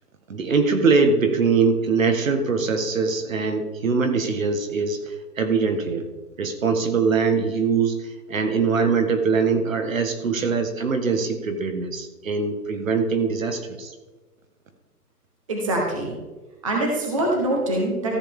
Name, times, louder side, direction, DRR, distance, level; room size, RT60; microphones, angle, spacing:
voice 1, 0.3-5.0 5.4-6.1 6.4-8.0 8.3-13.9, right 5 dB, 55° right, 7 dB, 1.5 m, -22 dB
voice 2, 15.5-16.1 16.6-18.2, right 1 dB, 20° right, 0 dB, 1.0 m, -24 dB
14.0 x 8.1 x 3.6 m, 1.2 s
hypercardioid pair, 175°, 48 cm